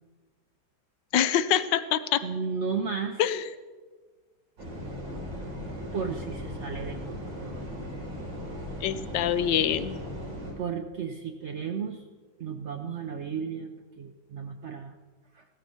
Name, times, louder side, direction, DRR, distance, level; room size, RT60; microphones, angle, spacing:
voice 1, 1.1-2.2 3.2-3.4 8.8-10.0, left 10 dB, 85° left, 13 dB, 1.4 m, -25 dB
voice 2, 2.2-3.2 5.9-7.7 10.6-12.1 12.4-15.0 15.3-15.5, right 6 dB, 60° right, 6 dB, 0.7 m, -34 dB
sound 1, 4.6-10.5, equal, 85° right, 4.1 m, -37 dB
16.0 x 13.5 x 4.2 m, 1.4 s
omnidirectional pair, 1.9 m